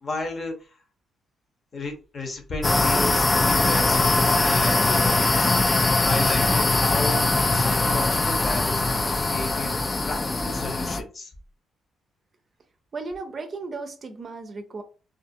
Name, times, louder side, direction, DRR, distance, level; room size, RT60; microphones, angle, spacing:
voice 1, 0.0-0.7 1.7-5.6 6.0-11.3, left 2 dB, 40° left, 0.9 m, -33 dB
sound 1, 2.6-11.0, left 2 dB, 25° left, 0.3 m, -21 dB
voice 2, 12.9-14.8, right 3 dB, 45° right, 0.5 m, -35 dB
2.5 x 2.4 x 2.6 m
cardioid pair, 90°, 0 cm